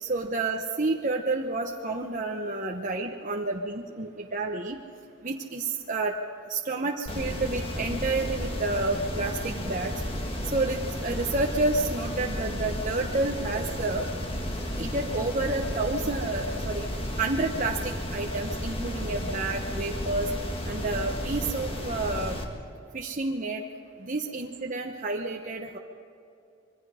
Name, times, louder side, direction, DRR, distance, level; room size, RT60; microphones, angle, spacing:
voice 1, 0.0-4.8 5.2-6.1 6.5-9.9 10.5-14.0 14.8-16.9 17.2-20.3 20.6-22.4 22.9-23.6 24.0-25.8, right 3 dB, 40° right, 1 dB, 1.0 m, -29 dB
sound 1, 7.1-22.4, equal, 25° left, 1.8 m, -33 dB
25.5 x 22.5 x 5.0 m, 2.5 s
head